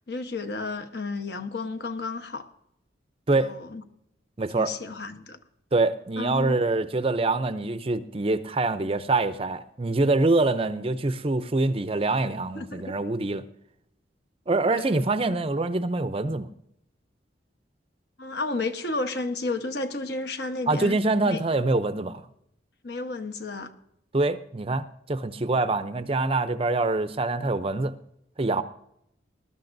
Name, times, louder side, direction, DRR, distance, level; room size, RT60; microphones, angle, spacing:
voice 1, 0.1-2.5 3.4-3.8 4.5-5.4 6.2-6.6 12.5-12.9 14.7-15.0 18.2-21.0 21.3-21.4 22.8-23.7, left 3 dB, 60° left, 1.1 m, -32 dB
voice 2, 4.4-4.7 5.7-13.4 14.5-16.5 20.7-22.2 24.1-27.9 28.4-28.6, right 2 dB, 30° right, 0.5 m, -25 dB
20.5 x 12.5 x 2.6 m
head